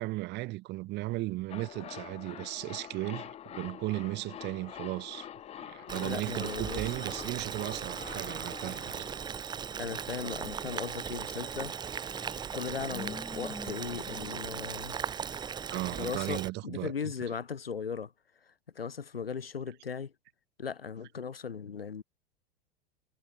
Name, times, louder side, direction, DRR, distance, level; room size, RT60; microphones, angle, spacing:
voice 1, 0.0-5.3 5.6-9.1 15.7-16.9, right 19 dB, 35° right, 1.7 m, -36 dB
Jadeo animal, 1.5-10.3 10.6-10.7, left 10 dB, 20° left, 0.9 m, -46 dB
voice 2, 5.8-6.9 9.8-11.7 12.5-15.0 16.0-18.1 18.5-20.1 20.6-22.0, left 6 dB, 80° left, 1.5 m, -38 dB
Boiling, 5.9-16.5, right 7 dB, 15° right, 0.7 m, -38 dB
sound 1, 9.7-15.7, left 2 dB, 5° left, 3.9 m, -49 dB
figure-of-eight pair, 90°, 29 cm